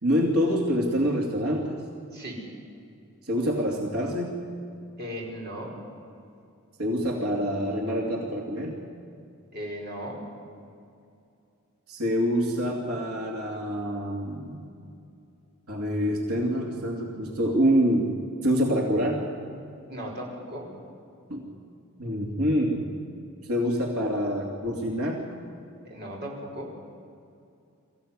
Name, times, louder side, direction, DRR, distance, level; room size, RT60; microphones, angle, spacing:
voice 1, 0.0-1.8 3.2-4.4 6.8-8.8 11.9-14.6 15.7-18.1 18.4-19.3 21.3-21.4 22.0-22.9 23.5-25.3, equal, 85° right, 0 dB, 2.8 m, -26 dB
voice 2, 2.1-2.4 5.0-5.7 9.5-10.2 19.9-20.7 25.9-26.7, equal, 45° right, -1 dB, 4.9 m, -36 dB
23.0 x 15.5 x 9.8 m, 2.5 s
head